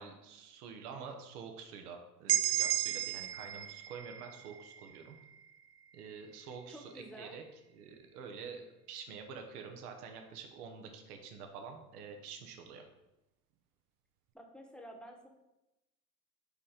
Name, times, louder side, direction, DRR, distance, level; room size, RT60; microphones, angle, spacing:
voice 1, 0.0-5.2 5.9-7.4 7.7-8.6 8.9-12.8, right 6 dB, 75° right, 4 dB, 1.0 m, -47 dB
sound 1, 2.3-6.1, right 12 dB, 50° right, 0.6 m, -35 dB
voice 2, 6.7-7.4 14.3-15.3, equal, ahead, 3 dB, 1.0 m, -50 dB
5.2 x 4.4 x 4.9 m, 0.96 s
hypercardioid pair, 90°, 45 cm